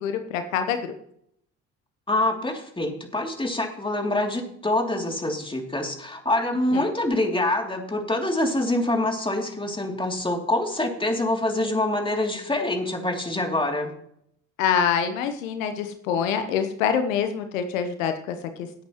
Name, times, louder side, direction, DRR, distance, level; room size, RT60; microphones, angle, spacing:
voice 1, 0.0-0.9 6.7-6.9 14.6-18.8, left 7 dB, 80° left, 8 dB, 1.1 m, -26 dB
voice 2, 2.1-13.9, left 1 dB, 15° left, 2 dB, 2.9 m, -25 dB
18.0 x 8.4 x 3.1 m, 0.68 s
hypercardioid pair, 55°, 39 cm